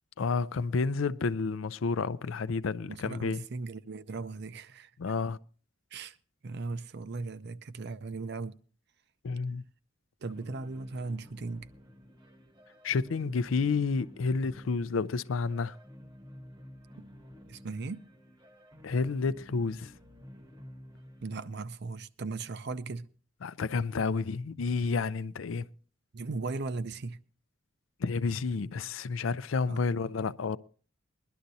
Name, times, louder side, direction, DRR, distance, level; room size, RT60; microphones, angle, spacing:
voice 1, 0.2-3.4 5.0-5.4 9.2-9.6 12.8-15.8 18.8-19.9 23.4-25.7 28.0-30.6, left 4 dB, 85° left, 0.5 m, -30 dB
voice 2, 2.9-5.1 5.9-6.2 6.4-8.6 10.2-11.7 17.5-18.0 21.2-23.1 26.1-27.2 29.7-30.1, right 3 dB, 60° right, 0.6 m, -38 dB
sound 1, 10.2-21.5, equal, 25° right, 0.9 m, -51 dB
21.5 x 11.5 x 2.7 m
head